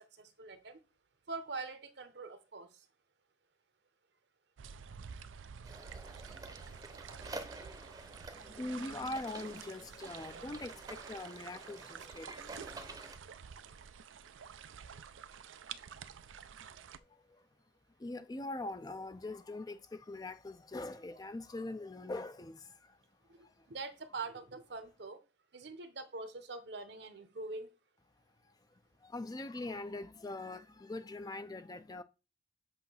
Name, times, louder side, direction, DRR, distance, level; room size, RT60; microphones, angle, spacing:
voice 1, 0.2-0.8 1.3-2.7 23.3-25.2 25.5-27.7, right 3 dB, 60° right, 0.9 m, -44 dB
sound 1, 4.6-17.0, right 7 dB, 85° right, 0.5 m, -50 dB
sound 2, 5.6-13.2, right 2 dB, 20° right, 0.7 m, -49 dB
voice 2, 8.3-12.4 17.0-17.5 18.0-23.0 23.4-23.7 28.4-32.0, left 2 dB, 20° left, 0.4 m, -43 dB
8.1 x 2.8 x 5.6 m
head